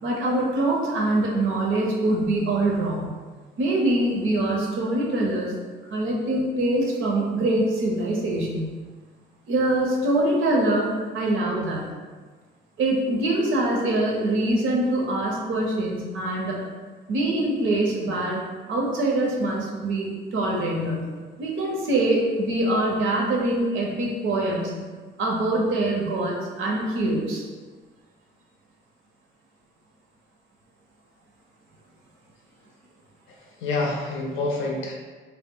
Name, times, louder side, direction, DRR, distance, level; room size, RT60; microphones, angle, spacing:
voice 1, 0.0-3.1 3.6-5.5 5.9-8.7 9.5-11.8 12.8-16.6 17.1-18.4 18.7-21.1 21.4-24.8 25.2-27.4, right 1 dB, 75° right, -2 dB, 0.7 m, -24 dB
voice 2, 33.4-34.9, left 2 dB, 85° left, 0 dB, 0.5 m, -27 dB
2.1 x 2.1 x 3.6 m, 1.4 s
cardioid pair, 90°, 20 cm